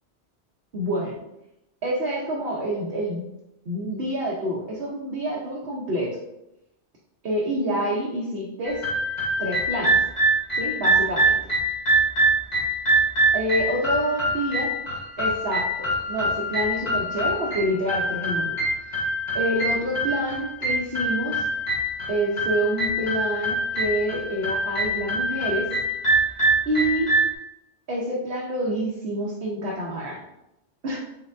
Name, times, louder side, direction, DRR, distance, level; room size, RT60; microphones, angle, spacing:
voice 1, 0.7-1.1 1.8-3.2 3.7-6.2 7.2-8.8 9.4-10.0 10.6-11.4 13.3-14.7 15.2-18.5 19.3-21.4 22.1-25.7 26.7-27.1 27.9-30.2 30.8-31.0, right 1 dB, 65° right, -4 dB, 1.0 m, -27 dB
sound 1, 8.6-27.3, right 1 dB, 40° left, 1.2 m, -24 dB
4.2 x 3.9 x 2.6 m, 0.86 s
omnidirectional pair, 1.1 m